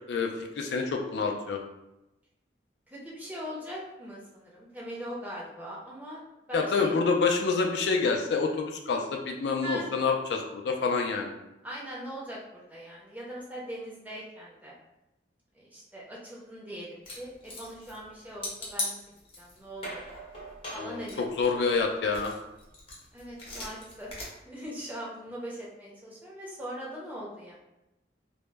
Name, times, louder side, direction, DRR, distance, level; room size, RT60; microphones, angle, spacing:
voice 1, 0.1-1.6 6.5-11.3 20.8-22.3, left 4 dB, 70° left, 2 dB, 0.3 m, -27 dB
voice 2, 2.9-6.2 6.5-7.0 9.6-9.9 11.6-14.8 15.5-19.0 19.4-20.0 20.7-21.3 23.1-24.1 24.4-27.6, equal, 10° right, -5 dB, 0.5 m, -41 dB
sound 1, 17.1-18.1 18.4-19.6 19.8-21.8 22.1-24.2, left 2 dB, 30° left, 0.6 m, -38 dB
2.0 x 2.0 x 3.2 m, 0.93 s
head